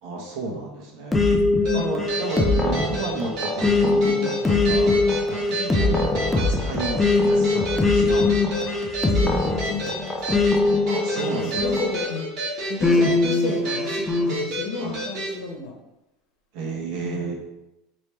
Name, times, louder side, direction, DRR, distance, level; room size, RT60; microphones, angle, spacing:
voice 1, 0.0-1.2 1.7-5.0 5.3-7.0 7.2-8.6 10.8-11.7 14.8-15.0 16.5-17.3, right 3 dB, 60° right, -2 dB, 1.0 m, -32 dB
sound 1, 1.1-12.2 12.8-14.4, left 3 dB, 10° left, 0.4 m, -22 dB
voice 2, 1.6-2.0 5.6-5.8 9.1-10.4 11.2-12.3 12.6-15.8 16.9-17.3, left 3 dB, 65° left, 0 dB, 0.9 m, -33 dB
sound 2, 1.6-15.3, right 1 dB, 45° right, 1.3 m, -31 dB
3.2 x 2.9 x 3.2 m, 0.91 s
supercardioid pair, 140°, 0 cm